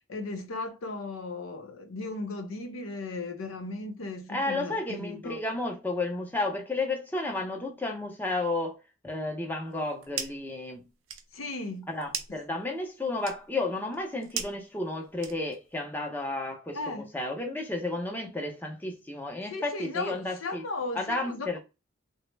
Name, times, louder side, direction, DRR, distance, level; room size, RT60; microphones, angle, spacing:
voice 1, 0.1-5.4 11.3-11.9 16.7-17.1 19.5-21.6, left 3 dB, 90° left, 0.6 m, -36 dB
voice 2, 4.3-8.8 9.0-10.8 11.9-20.6 20.9-21.6, left 2 dB, 10° left, 0.5 m, -32 dB
sound 1, 9.7-10.5 10.8-15.7, right 8 dB, 85° right, 0.5 m, -40 dB
3.1 x 2.0 x 3.2 m
head